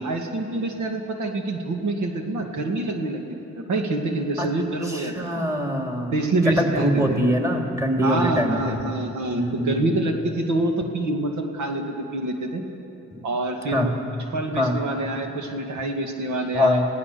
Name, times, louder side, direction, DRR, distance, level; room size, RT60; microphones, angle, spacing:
voice 1, 0.0-3.2 3.7-5.4 6.1-7.2 8.0-12.6 13.2-13.9 14.3-16.8, right 2 dB, 80° right, 3 dB, 2.2 m, -26 dB
voice 2, 4.9-6.1 6.5-8.8 9.3-9.9 13.1-13.2 13.7-13.9 14.5-14.8 16.5-16.9, equal, 10° right, 2 dB, 2.7 m, -23 dB
27.0 x 17.0 x 6.9 m, 2.9 s
cardioid pair, 90°, 30 cm